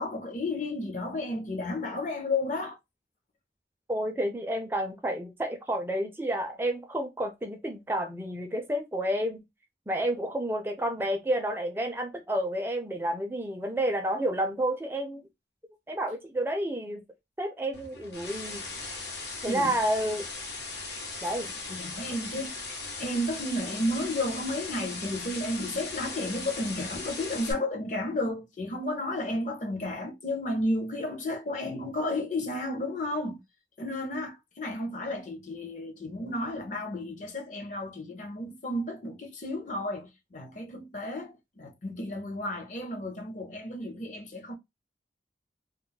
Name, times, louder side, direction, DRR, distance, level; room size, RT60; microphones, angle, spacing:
voice 1, 0.0-2.8 19.4-19.8 21.0-21.1 21.7-33.4 33.8-44.5, left 1 dB, 45° left, 0.6 m, -32 dB
voice 2, 3.9-9.4 9.9-15.2 15.9-17.0 17.4-18.6 19.4-20.3 21.2-21.5, right 1 dB, 15° right, 0.4 m, -30 dB
sound 1, 17.7-27.5, left 3 dB, 70° left, 0.9 m, -38 dB
2.2 x 2.0 x 3.8 m
head